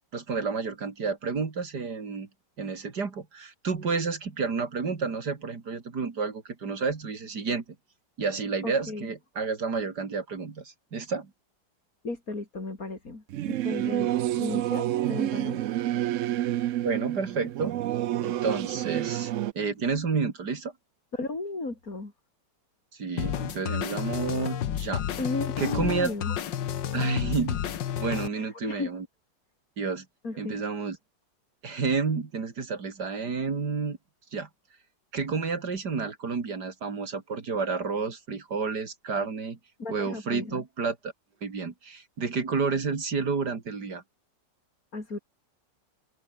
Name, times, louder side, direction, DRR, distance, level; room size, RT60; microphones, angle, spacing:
voice 1, 0.1-2.3 2.6-7.6 8.2-11.3 16.8-17.8 18.2-20.7 22.9-25.0 25.6-26.1 26.9-27.6 28.0-29.1 29.8-30.0 30.4-31.0 31.6-34.0 34.3-34.5 35.1-39.6 39.9-41.1 41.4-44.0, right 5 dB, 65° right, 3.0 m, -30 dB
voice 2, 8.6-9.1 12.0-14.1 14.4-15.6 21.1-22.1 25.2-26.4 28.6-28.9 30.2-30.6 39.8-40.6 44.9-45.2, left 3 dB, 50° left, 4.6 m, -34 dB
Singing / Musical instrument, 13.3-19.5, right 13 dB, 80° right, 0.7 m, -29 dB
sound 1, 23.2-28.3, left 10 dB, 80° left, 1.9 m, -31 dB
open air
omnidirectional pair, 2.0 m